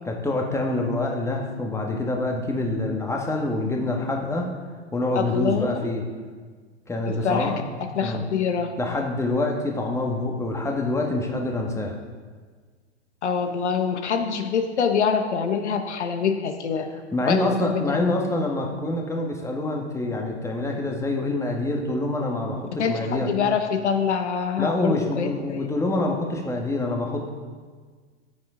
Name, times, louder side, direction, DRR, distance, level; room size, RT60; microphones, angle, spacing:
voice 1, 0.0-4.5 4.9-6.0 6.9-7.6 8.0-8.2 8.8-12.0 17.1-23.3 24.6-27.3, left 2 dB, 10° left, 1 dB, 1.5 m, -26 dB
voice 2, 5.1-5.7 7.1-7.6 7.9-8.7 13.2-16.9 17.3-18.1 22.8-25.7, left 6 dB, 75° left, 6 dB, 1.1 m, -25 dB
14.5 x 7.6 x 3.8 m, 1.5 s
hypercardioid pair, 100°, 35 cm